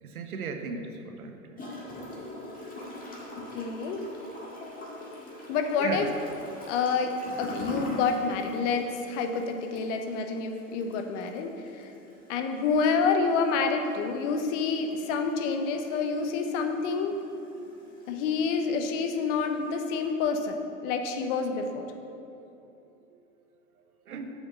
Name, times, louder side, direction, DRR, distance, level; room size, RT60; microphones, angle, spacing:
voice 1, 0.0-1.6 5.8-6.1 24.1-24.3, right 4 dB, 85° right, 5 dB, 1.0 m, -36 dB
Gurgling / Toilet flush, 1.6-20.1, left 1 dB, 20° left, 1.8 m, -44 dB
voice 2, 3.5-4.1 5.5-6.1 6.7-7.1 7.4-11.9 12.3-17.2 18.1-21.9, left 5 dB, 55° left, 6 dB, 1.0 m, -28 dB
7.8 x 5.3 x 6.2 m, 2.8 s
hypercardioid pair, 100°, 42 cm